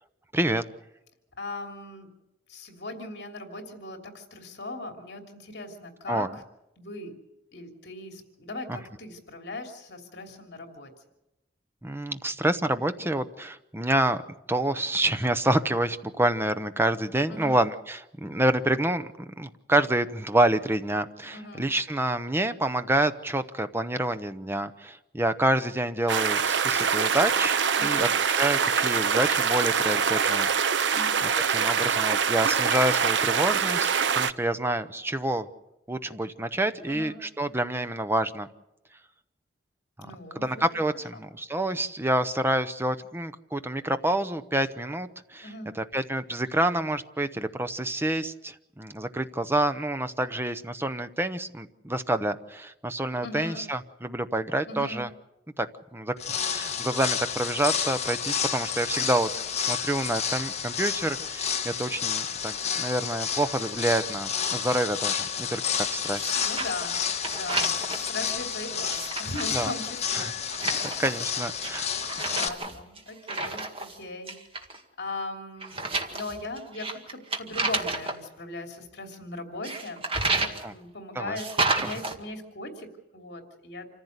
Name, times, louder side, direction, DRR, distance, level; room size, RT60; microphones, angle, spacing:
voice 1, 1.4-2.1 2.5-6.3 6.8-7.1 7.5-10.9 17.3-17.7 21.2-21.7 27.8-28.1 30.9-31.3 36.9-37.2 40.0-40.6 41.1-41.2 45.4-45.7 53.2-53.7 54.6-55.1 66.4-70.3 70.7-71.0 72.2-74.6 75.0-83.9, left 2 dB, 65° left, 3 dB, 3.0 m, -39 dB
voice 2, 11.8-14.2 14.5-30.5 30.8-30.9 31.2-35.5 35.9-38.5 40.4-45.5 45.8-55.1 55.6-55.7 55.9-59.3 59.7-65.6 65.9-66.3 69.5-69.7 70.1-70.3 71.0-71.9 80.6-80.7 81.1-81.4, right 1 dB, 15° right, 10 dB, 0.8 m, -28 dB
sound 1, 26.1-34.3, right 6 dB, 70° right, 0.7 m, -24 dB
sound 2, 56.2-72.5, left 7 dB, 35° left, 1.4 m, -30 dB
sound 3, 66.1-66.8 67.1-68.1 68.7-69.5 70.5-71.3 71.6-74.0 74.3-74.8 75.6-78.2 79.6-80.7 81.4-82.2, right 3 dB, 30° right, 2.0 m, -31 dB
27.0 x 15.0 x 8.1 m, 0.92 s
head